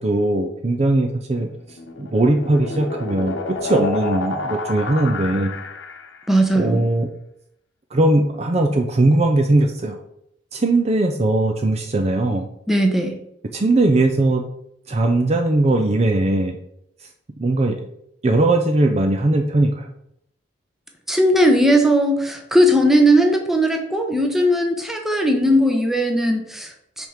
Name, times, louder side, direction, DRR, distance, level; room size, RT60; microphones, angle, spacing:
voice 1, 0.0-1.5 2.0-5.6 6.6-7.1 7.9-10.0 10.5-12.5 13.5-14.4 14.9-16.6 17.4-17.8 18.2-19.9, right 2 dB, 35° right, 4 dB, 0.5 m, -19 dB
sound 1, 1.5-6.3, left 3 dB, 70° left, 1.0 m, -30 dB
voice 2, 6.3-6.9 12.7-13.2 21.1-27.1, equal, ahead, 2 dB, 0.8 m, -18 dB
6.0 x 3.6 x 5.7 m, 0.75 s
head